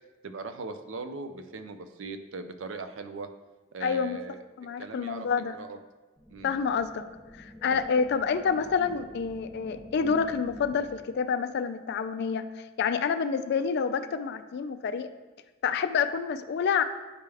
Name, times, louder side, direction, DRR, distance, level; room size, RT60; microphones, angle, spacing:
voice 1, 0.2-3.3 3.7-4.4 4.8-5.3 5.5-5.8 6.3-6.6 7.7-7.8 8.8-9.0, right 3 dB, 65° right, 8 dB, 0.5 m, -39 dB
voice 2, 3.8-4.2 4.6-5.5 6.4-7.1 7.4-15.1 15.6-16.8, left 6 dB, 55° left, 11 dB, 0.3 m, -28 dB
sound 1, 6.2-11.2, equal, 10° right, 0.6 m, -47 dB
9.0 x 3.4 x 3.4 m, 1.2 s
head